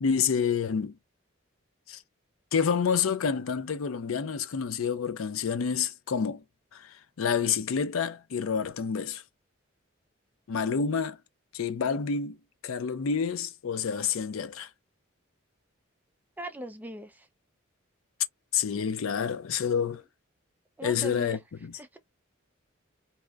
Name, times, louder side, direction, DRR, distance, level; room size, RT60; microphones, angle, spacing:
voice 1, 0.0-1.0 1.9-2.0 2.5-6.4 6.7-9.2 10.5-11.2 11.5-12.4 12.6-14.7 18.5-20.0 20.8-21.4, left 6 dB, 85° left, 0.5 m, -28 dB
voice 2, 16.4-17.3 20.8-21.4 21.8-22.0, right 1 dB, 10° right, 0.4 m, -39 dB
2.8 x 2.1 x 2.3 m
head